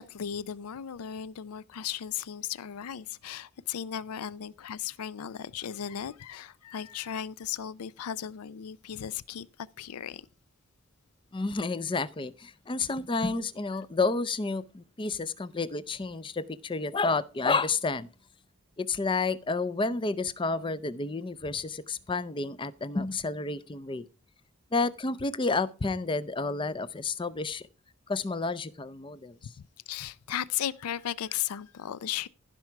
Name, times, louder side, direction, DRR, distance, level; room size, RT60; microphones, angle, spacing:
voice 1, 0.0-10.2 29.6-32.3, left 9 dB, 80° left, 0.4 m, -36 dB
voice 2, 11.3-18.1 18.8-24.0 24.7-27.7 28.1-29.4, left 3 dB, 20° left, 0.5 m, -30 dB
15.0 x 6.0 x 4.5 m
head